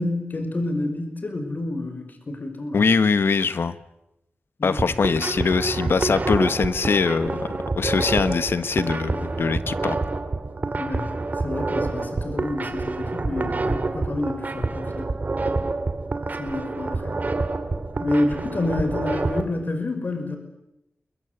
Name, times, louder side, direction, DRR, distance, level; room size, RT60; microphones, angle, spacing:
voice 1, 0.0-2.8 4.6-5.3 10.8-11.1 11.4-15.1 16.4-17.2 18.0-20.4, left 2 dB, 50° left, 6 dB, 5.3 m, -28 dB
voice 2, 2.7-3.8 4.6-7.5 7.7-10.0, left 5 dB, 85° left, 13 dB, 1.3 m, -22 dB
sound 1, 4.6-19.4, right 3 dB, 45° right, 2.5 m, -27 dB
29.5 x 22.5 x 8.1 m, 0.88 s
wide cardioid pair, 90°, 4 cm